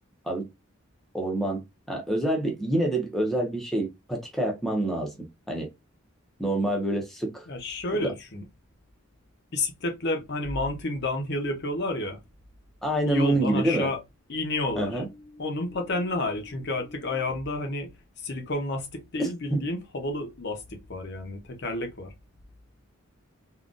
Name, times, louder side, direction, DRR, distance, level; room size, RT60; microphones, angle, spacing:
voice 1, 1.1-5.7 6.4-7.5 7.9-8.1 12.8-13.9 14.7-15.1 19.2-19.6, right 1 dB, ahead, 0.6 m, -27 dB
voice 2, 7.5-8.4 9.5-12.2 13.1-14.0 14.3-15.0 15.4-17.9 18.2-22.1, left 2 dB, 50° left, 0.7 m, -30 dB
3.7 x 2.3 x 2.5 m
head